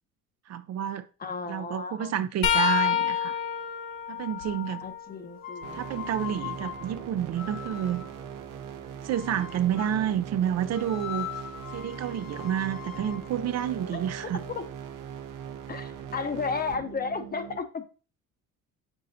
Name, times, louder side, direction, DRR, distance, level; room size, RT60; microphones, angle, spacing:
voice 1, 0.5-1.1 1.5-3.4 4.1-4.9 5.7-8.0 9.0-11.4 11.7-14.4, right 10 dB, 50° right, 0.5 m, -29 dB
voice 2, 1.2-2.1 4.8-5.9 13.9-14.0 14.3-14.6 15.7-17.9, left 5 dB, 25° left, 0.7 m, -33 dB
sound 1, 2.4-6.2 6.7-8.7 11.6-11.8 13.0-13.2 14.5-14.6, left 9 dB, 85° left, 1.3 m, -31 dB
sound 2, 5.4-8.2 9.1-10.1 10.7-14.7, left 10 dB, 50° left, 1.4 m, -41 dB
sound 3, 5.6-17.6, right 8 dB, 65° right, 1.0 m, -40 dB
7.4 x 6.0 x 2.6 m
cardioid pair, 115°, 34 cm